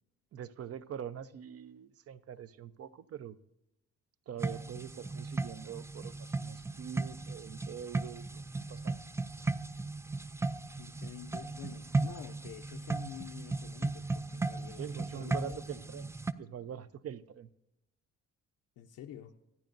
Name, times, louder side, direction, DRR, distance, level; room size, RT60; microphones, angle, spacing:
voice 1, 0.3-3.4 4.3-9.0 14.7-16.1 16.4-17.5, right 9 dB, 50° right, 0.7 m, -44 dB
sound 1, 4.4-16.3, right 3 dB, 10° right, 0.4 m, -36 dB
voice 2, 10.8-15.8 18.8-19.3, left 10 dB, 85° left, 0.8 m, -48 dB
26.0 x 9.1 x 2.6 m
cardioid pair, 90°, 30 cm